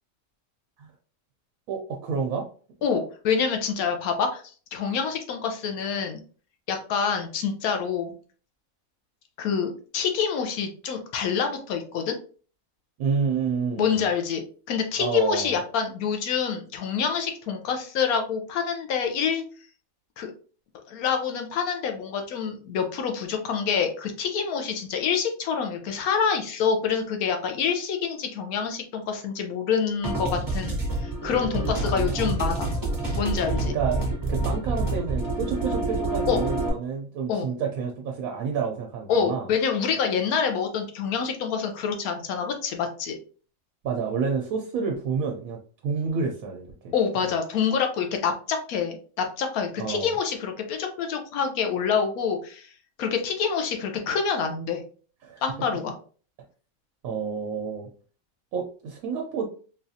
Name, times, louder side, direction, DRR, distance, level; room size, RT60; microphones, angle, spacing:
voice 1, 1.7-2.4 13.0-14.1 15.0-15.6 31.7-32.5 33.6-34.0 34.3-39.5 43.8-45.6 45.8-46.9 47.2-47.3 49.8-50.1 55.2-55.4 57.0-57.9 58.5-59.4, right 6 dB, 80° right, 2 dB, 1.0 m, -29 dB
voice 2, 2.8-4.4 4.7-6.2 6.7-8.2 9.4-12.2 13.8-14.4 14.7-19.4 20.2-20.3 20.9-32.7 33.2-33.8 36.3-36.4 37.3-37.5 39.1-43.2 46.9-52.7 53.0-54.8 55.4-55.9, left 6 dB, 90° left, 5 dB, 1.1 m, -26 dB
sound 1, 30.0-36.7, right 2 dB, 15° right, 0.9 m, -27 dB
3.9 x 2.4 x 2.7 m, 0.40 s
omnidirectional pair, 1.5 m